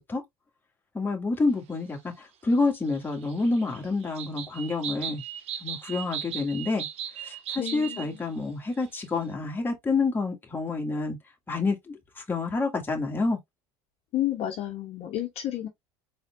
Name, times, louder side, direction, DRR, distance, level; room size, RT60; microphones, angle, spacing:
voice 1, 0.9-5.2 5.6-6.9 7.2-11.2 11.5-13.4, left 3 dB, 15° left, 1.9 m, -28 dB
sound 1, 2.9-8.1 8.4-8.5 8.8-9.0, right 9 dB, 55° right, 1.1 m, -37 dB
voice 2, 7.6-8.2 14.1-15.7, left 12 dB, 55° left, 1.2 m, -31 dB
4.2 x 4.1 x 2.2 m
supercardioid pair, 100°, 13 cm